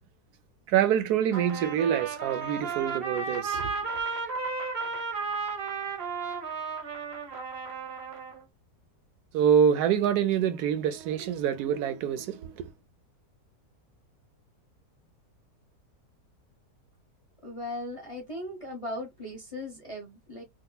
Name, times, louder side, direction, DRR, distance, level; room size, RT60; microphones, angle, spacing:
voice 1, 0.7-3.7 9.3-12.7, right 9 dB, 75° right, 1.0 m, -26 dB
Trumpet, 1.3-8.4, right 5 dB, 45° right, 0.9 m, -34 dB
voice 2, 17.4-20.4, left 1 dB, 30° left, 0.6 m, -38 dB
3.7 x 2.4 x 2.2 m
omnidirectional pair, 1.8 m